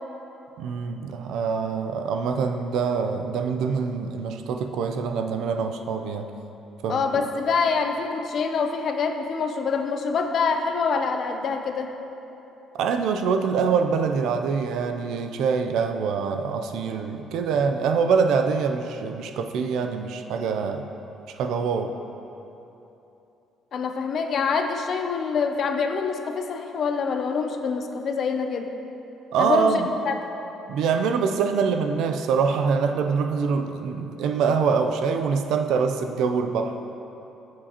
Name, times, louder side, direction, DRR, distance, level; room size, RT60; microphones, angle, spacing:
voice 1, 0.6-6.3 6.8-7.1 12.7-20.9 21.3-21.9 29.3-29.9 30.7-36.8, right 5 dB, 65° right, 6 dB, 0.5 m, -24 dB
voice 2, 6.9-11.9 23.7-28.7 29.4-30.3, left 5 dB, 40° left, 6 dB, 0.5 m, -25 dB
14.0 x 7.4 x 2.9 m, 3.0 s
cardioid pair, 180°, 0 cm